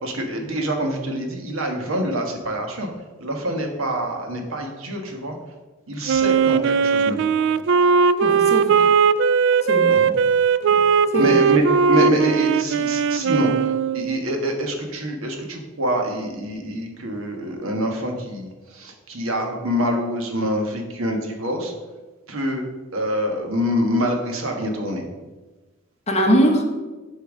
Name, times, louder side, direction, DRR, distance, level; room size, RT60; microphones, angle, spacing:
voice 1, 0.0-2.9 3.2-5.4 5.9-7.3 9.9-10.1 10.7-10.8 11.1-21.7 22.3-22.6 22.9-25.0, equal, 75° right, 3 dB, 1.5 m, -25 dB
Wind instrument woodwind instrument, 6.1-14.2, right 6 dB, 60° right, 0.3 m, -18 dB
voice 2, 8.2-8.9 9.6-10.0 11.1-11.4 26.1-26.6, equal, 30° left, 2 dB, 1.3 m, -21 dB
8.4 x 4.5 x 6.4 m, 1.2 s
head